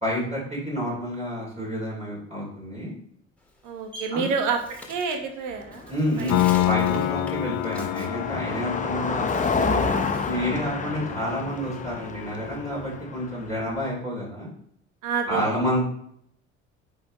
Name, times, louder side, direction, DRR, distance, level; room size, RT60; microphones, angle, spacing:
voice 1, 0.0-2.9 4.1-4.3 5.9-14.5 15.3-15.8, equal, 20° right, -6 dB, 3.0 m, -29 dB
Bird, 3.4-8.9 9.2-10.5 10.8-12.5, left 1 dB, 5° left, 2.1 m, -45 dB
voice 2, 3.6-4.6 4.9-6.3 6.7-7.2 10.6-11.0 13.8-14.0 15.0-15.6, right 5 dB, 55° right, 4 dB, 1.5 m, -30 dB
Car passing by, 5.5-13.8, left 4 dB, 20° left, 0.9 m, -30 dB
Piano, 6.3-13.0, left 15 dB, 50° left, 0.5 m, -29 dB
9.6 x 4.7 x 3.1 m, 0.70 s
hypercardioid pair, 60°, 35 cm